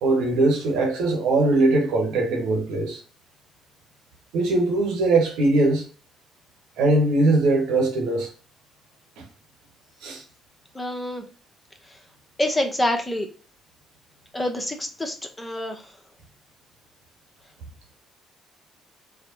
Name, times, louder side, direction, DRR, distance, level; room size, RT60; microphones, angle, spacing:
voice 1, 0.0-3.0 4.3-5.8 6.8-8.3 10.0-10.2, right 2 dB, 70° right, 1.0 m, -21 dB
voice 2, 10.7-11.2 11.9-12.0 12.4-13.3 14.3-16.0, left 1 dB, 15° left, 0.8 m, -27 dB
4.7 x 2.1 x 2.9 m
hypercardioid pair, 50°, 0 cm